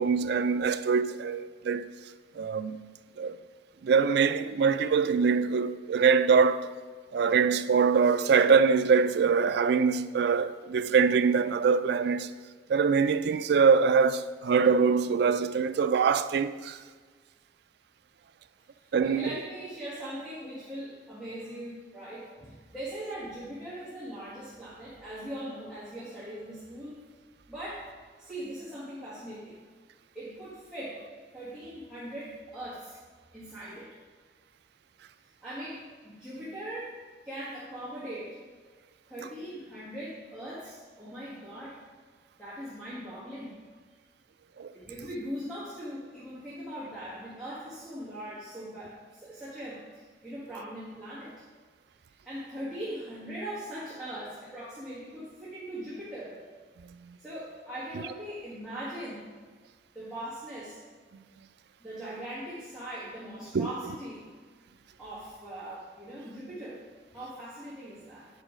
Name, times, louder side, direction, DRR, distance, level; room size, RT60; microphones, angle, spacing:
voice 1, 0.0-1.9 2.4-2.8 3.2-3.4 3.8-6.7 7.1-12.3 12.7-16.8 18.9-19.2 44.6-44.7 57.1-57.2 63.5-63.7, right 5 dB, 60° right, 0.3 m, -24 dB
voice 2, 18.8-26.9 27.5-27.9 28.2-29.6 30.1-31.0 31.3-33.0 33.3-33.9 35.4-37.0 37.2-38.4 39.1-41.8 42.4-43.6 44.7-51.4 52.2-56.4 57.2-59.3 59.9-60.8 61.8-64.2 65.0-66.8 67.1-68.3, right 1 dB, 5° right, 1.6 m, -40 dB
8.3 x 4.8 x 5.0 m
head